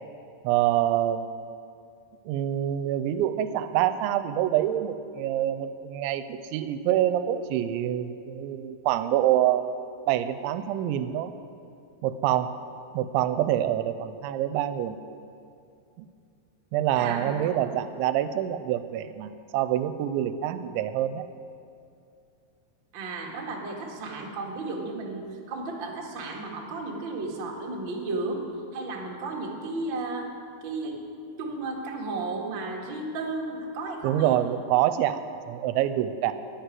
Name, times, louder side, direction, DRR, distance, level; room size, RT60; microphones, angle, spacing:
voice 1, 0.4-1.3 2.3-9.8 10.1-11.3 12.0-12.5 12.9-15.0 16.0-16.1 16.7-21.2 34.0-36.3, right 12 dB, 85° right, 11 dB, 2.9 m, -26 dB
voice 2, 16.9-17.4 22.9-28.4 28.7-30.3 30.6-31.0 31.4-34.4, right 3 dB, 50° right, -1 dB, 1.5 m, -33 dB
11.5 x 11.0 x 9.2 m, 2.5 s
omnidirectional pair, 5.3 m